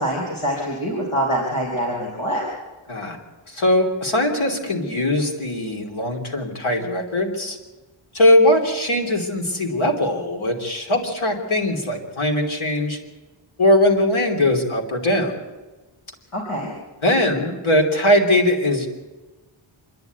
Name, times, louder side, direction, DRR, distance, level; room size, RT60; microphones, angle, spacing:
voice 1, 0.0-2.4 16.3-16.7, equal, 85° left, -3 dB, 4.4 m, -24 dB
voice 2, 3.5-7.6 8.1-13.0 13.6-15.3 17.0-18.9, left 1 dB, 70° left, 2 dB, 3.2 m, -20 dB
26.5 x 10.5 x 9.3 m, 1.2 s
wide cardioid pair, 120°, 50 cm